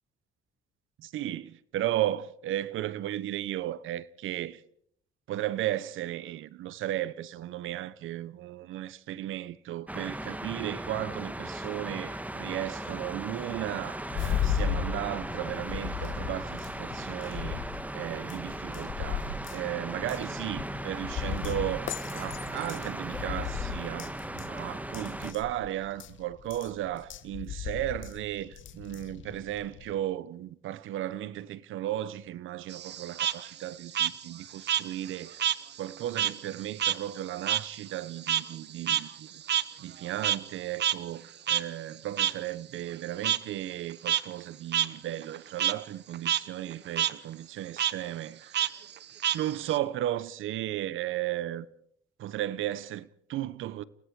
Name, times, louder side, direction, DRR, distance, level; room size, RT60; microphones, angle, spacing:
voice 1, 1.0-4.6 5.3-35.4 35.8-39.3 39.8-48.7 49.3-51.7 52.2-53.8, right 13 dB, 80° right, 1.0 m, -35 dB
sound 1, 9.9-25.3, right 1 dB, 5° right, 1.6 m, -38 dB
sound 2, 14.1-29.9, left 7 dB, 75° left, 2.0 m, -36 dB
Frog, 32.7-35.6 35.9-40.6 40.8-40.9 41.5-41.6 42.2-42.3 43.2-43.4 43.9-44.2 44.7-44.9 45.2-45.7 46.1-46.4 46.7-47.1 47.8-47.9 48.5-49.8, right 10 dB, 60° right, 1.0 m, -28 dB
30.0 x 18.0 x 4.8 m
cardioid pair, 90°, 20 cm